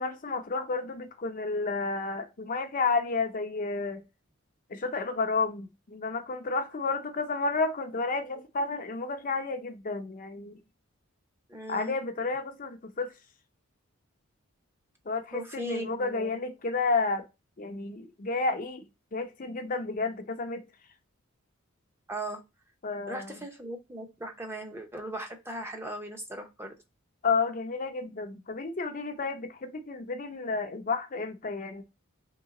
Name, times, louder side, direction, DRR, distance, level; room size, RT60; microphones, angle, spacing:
voice 1, 0.0-4.0 4.7-10.6 11.7-13.1 15.1-17.2 17.6-18.8 19.1-20.6 22.8-23.3 27.2-31.8, left 4 dB, 40° left, 0.6 m, -31 dB
voice 2, 11.5-11.9 15.3-16.4 22.1-22.4 23.1-26.7, right 1 dB, 10° right, 0.7 m, -38 dB
3.7 x 3.3 x 4.0 m
head